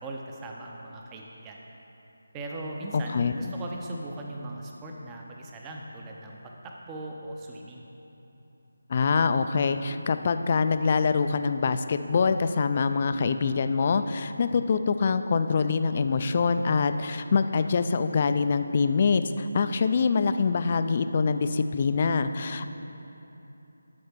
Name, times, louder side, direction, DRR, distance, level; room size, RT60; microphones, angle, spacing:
voice 1, 0.0-1.6 2.3-7.9, right 1 dB, 15° right, -1 dB, 0.6 m, -39 dB
voice 2, 2.9-3.5 8.9-22.7, left 5 dB, 35° left, 10 dB, 0.3 m, -25 dB
12.5 x 4.3 x 5.1 m, 3.0 s
figure-of-eight pair, 170°, 0 cm